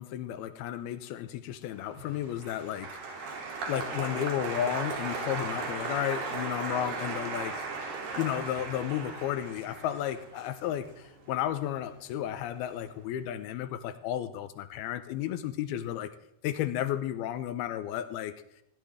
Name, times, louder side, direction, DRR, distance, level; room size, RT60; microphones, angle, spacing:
voice 1, 0.0-7.7 8.2-16.1 16.4-18.4, left 11 dB, 80° left, 12 dB, 2.5 m, -33 dB
Applause, 1.8-12.2 12.5-13.1, right 4 dB, 70° right, 4.9 m, -37 dB
20.5 x 15.5 x 3.5 m, 0.77 s
omnidirectional pair, 4.7 m